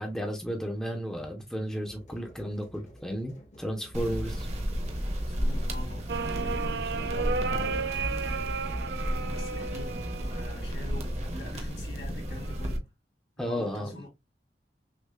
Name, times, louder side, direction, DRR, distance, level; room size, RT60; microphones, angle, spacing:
voice 1, 0.0-4.5 13.4-14.0, equal, 5° left, 0.5 m, -33 dB
sound 1, 1.9-8.7, left 1 dB, 40° left, 0.7 m, -48 dB
sound 2, 3.9-12.8, equal, 40° right, 0.8 m, -33 dB
voice 2, 5.1-12.9 13.4-14.1, left 2 dB, 80° left, 2.2 m, -45 dB
sound 3, 6.1-11.1 12.3-12.8, right 5 dB, 65° right, 0.3 m, -34 dB
6.1 x 2.1 x 2.2 m
head